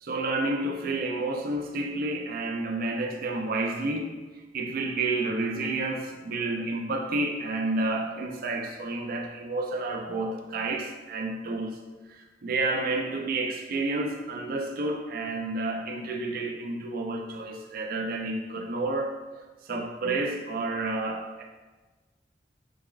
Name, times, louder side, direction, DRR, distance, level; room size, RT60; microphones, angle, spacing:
voice 1, 0.0-4.1 4.5-11.8 12.1-19.2 19.6-21.4, right 2 dB, 55° right, 2 dB, 0.5 m, -30 dB
5.1 x 3.4 x 2.3 m, 1.3 s
head